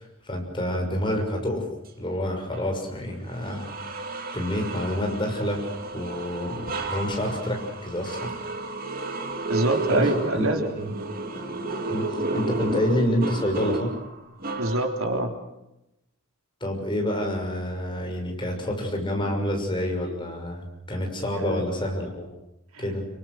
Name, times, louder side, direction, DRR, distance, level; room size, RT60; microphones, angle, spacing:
voice 1, 0.0-1.7 2.0-3.7 4.3-5.6 5.9-8.3 9.9-10.5 10.8-10.9 11.9-12.0 12.3-13.9 16.6-22.3 22.8-23.1, left 1 dB, 25° left, 2 dB, 6.4 m, -28 dB
sound 1, 2.5-2.7 3.3-15.2, right 3 dB, 45° right, 2.8 m, -32 dB
voice 2, 9.2-10.7 14.6-15.3 21.3-21.6, right 1 dB, 85° right, 4 dB, 3.7 m, -25 dB
27.0 x 24.5 x 6.4 m, 0.90 s
head